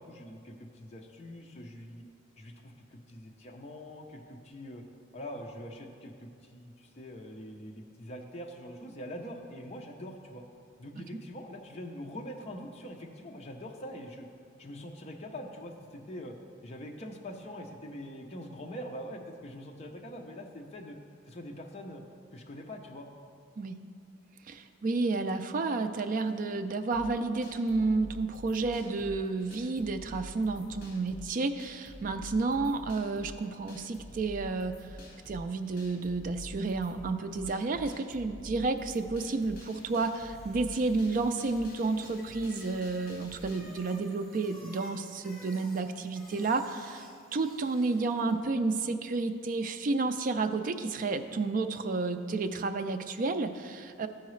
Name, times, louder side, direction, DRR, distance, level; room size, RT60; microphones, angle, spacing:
voice 1, 0.0-2.0 2.4-4.8 5.1-10.4 10.8-14.3 14.6-16.3 16.6-21.0 21.3-22.0 22.3-23.1, equal, 35° left, 1 dB, 0.5 m, -43 dB
voice 2, 24.5-35.0 35.3-54.1, right 3 dB, 45° right, 8 dB, 0.4 m, -31 dB
sound 1, 26.9-43.6, equal, 55° left, 1.5 m, -48 dB
Bicycle, 39.0-48.4, equal, ahead, 2.0 m, -55 dB
13.0 x 4.7 x 3.1 m, 2.3 s
head